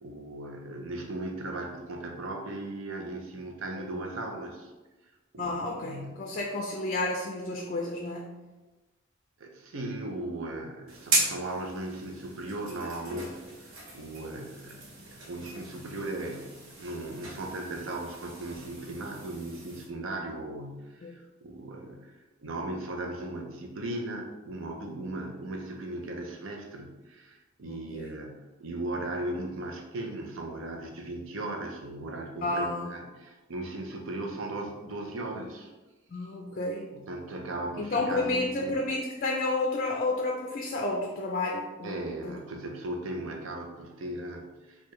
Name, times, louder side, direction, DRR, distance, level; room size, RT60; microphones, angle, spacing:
voice 1, 0.0-4.7 5.3-6.1 9.4-35.7 36.9-38.7 41.8-44.9, right 2 dB, 70° right, 3 dB, 0.6 m, -37 dB
voice 2, 5.4-8.3 21.0-21.1 27.6-28.1 32.4-32.9 36.1-36.9 37.8-42.4, left 2 dB, 40° left, 0 dB, 0.4 m, -31 dB
sound 1, 10.9-19.9, right 2 dB, 90° right, 0.9 m, -36 dB
4.5 x 2.3 x 3.0 m, 1.1 s
head